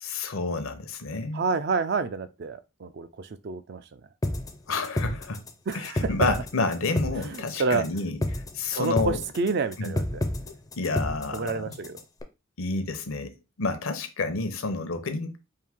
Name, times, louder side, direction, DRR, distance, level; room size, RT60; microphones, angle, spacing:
voice 1, 0.0-1.4 4.7-5.4 5.7-8.2 8.5-9.2 9.8-9.9 10.8-11.7 12.6-13.3 13.6-15.4, left 3 dB, 80° left, 0.7 m, -29 dB
voice 2, 1.3-4.0 5.7-6.1 7.1-7.9 8.7-10.3 11.3-12.0, right 4 dB, 50° right, 0.4 m, -29 dB
sound 1, 4.2-12.2, left 1 dB, 15° left, 0.4 m, -30 dB
4.6 x 2.6 x 3.5 m
head